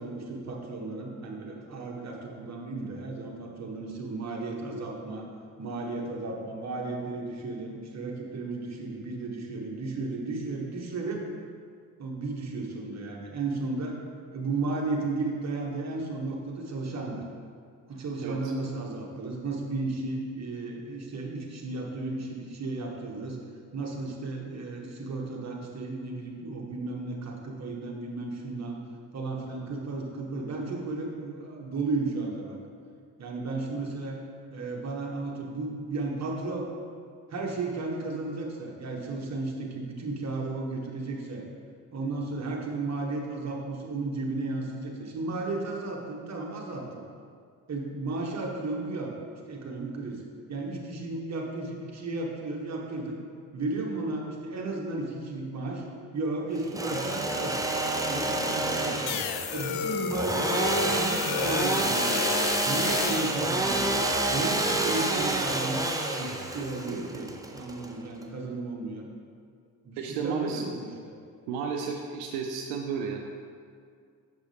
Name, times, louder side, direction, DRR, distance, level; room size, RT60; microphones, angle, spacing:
voice 1, 0.0-5.3 5.6-11.2 12.0-14.0 14.3-17.2 17.9-23.4 23.7-28.8 29.1-32.6 33.2-34.2 34.5-36.7 37.3-41.4 41.9-47.0 47.7-49.1 49.5-50.2 50.5-53.2 53.5-55.9 56.1-57.6 58.1-59.2 59.5-62.3 62.6-65.9 66.1-69.1 69.8-71.2, right 3 dB, 35° right, 0 dB, 1.5 m, -34 dB
voice 2, 18.2-18.5 70.0-70.7 71.5-73.2, right 5 dB, 75° right, 3 dB, 0.7 m, -32 dB
Engine / Sawing, 56.6-68.2, right 2 dB, 10° right, 0.7 m, -28 dB
sound 1, 59.1-63.4, left 7 dB, 80° left, 0.6 m, -32 dB
6.6 x 6.1 x 3.5 m, 2.2 s
hypercardioid pair, 65°, 45 cm